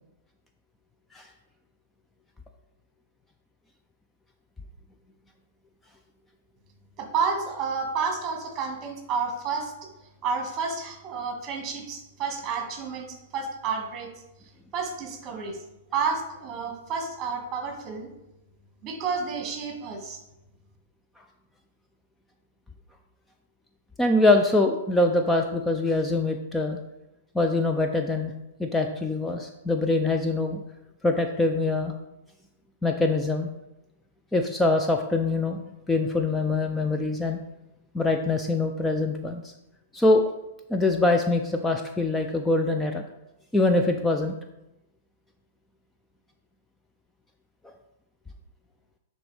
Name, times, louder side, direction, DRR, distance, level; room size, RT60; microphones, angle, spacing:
voice 1, 7.0-9.9 10.2-14.1 14.7-15.6 15.9-18.1 18.8-20.2, right 5 dB, 30° right, 2 dB, 1.8 m, -30 dB
voice 2, 24.0-26.8 27.3-28.3 28.6-30.6 31.0-31.9 32.8-33.5 34.3-35.6 35.9-37.4 37.9-39.5 39.9-40.2 40.7-43.0 43.5-44.4 47.6-47.7, left 2 dB, 10° left, 4 dB, 0.4 m, -24 dB
10.0 x 3.9 x 3.4 m, 0.93 s
hypercardioid pair, 130°, 0 cm